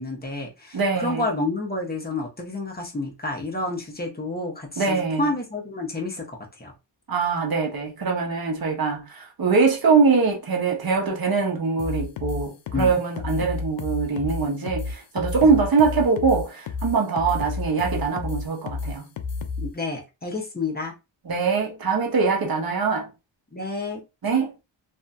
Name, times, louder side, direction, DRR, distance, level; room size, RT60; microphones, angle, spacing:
voice 1, 0.0-6.7 12.7-12.9 15.4-15.6 19.6-20.9 23.5-24.0, left 2 dB, 20° left, 0.9 m, -30 dB
voice 2, 0.7-1.2 4.8-5.3 7.1-19.1 21.2-23.1 24.2-24.5, right 5 dB, 45° right, 1.0 m, -23 dB
sound 1, 11.8-19.7, left 4 dB, 70° left, 0.6 m, -31 dB
2.6 x 2.6 x 2.3 m
wide cardioid pair, 90°, 49 cm